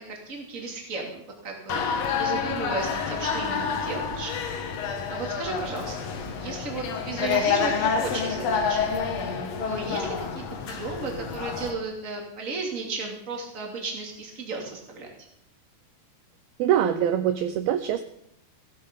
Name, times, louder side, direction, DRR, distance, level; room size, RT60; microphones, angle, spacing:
voice 1, 0.0-4.3 5.1-8.9 9.6-15.1, right 3 dB, 25° right, 1 dB, 2.3 m, -34 dB
sound 1, 1.7-11.7, left 6 dB, 70° left, 1.6 m, -28 dB
voice 2, 16.6-18.1, right 10 dB, 80° right, 10 dB, 2.2 m, -24 dB
16.0 x 11.0 x 5.3 m, 0.74 s
omnidirectional pair, 5.0 m